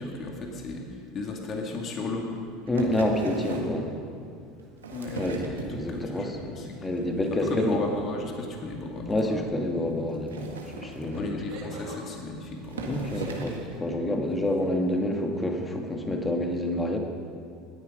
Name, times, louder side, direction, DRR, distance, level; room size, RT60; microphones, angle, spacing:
voice 1, 0.0-2.3 4.9-6.8 7.4-9.4 11.0-13.5, left 3 dB, 40° left, 1 dB, 2.3 m, -35 dB
voice 2, 2.7-3.9 5.2-6.4 6.8-7.8 9.1-11.4 12.9-17.0, left 1 dB, 15° left, 2 dB, 2.0 m, -28 dB
sound 1, 2.7-3.8 4.6-6.2 6.6-7.0 7.3-7.4 7.7-7.8 8.0-8.1 8.4-8.5 9.1-9.2 10.1-11.5 12.2-12.3 12.6-13.7 14.5-14.6, right 3 dB, 85° right, 1.6 m, -38 dB
sound 2, 4.6-5.0 7.2-7.8 10.1-10.2 11.5-12.0, right 3 dB, 60° right, 3.3 m, -43 dB
19.0 x 9.9 x 5.3 m, 2.5 s
hypercardioid pair, 80°, 0 cm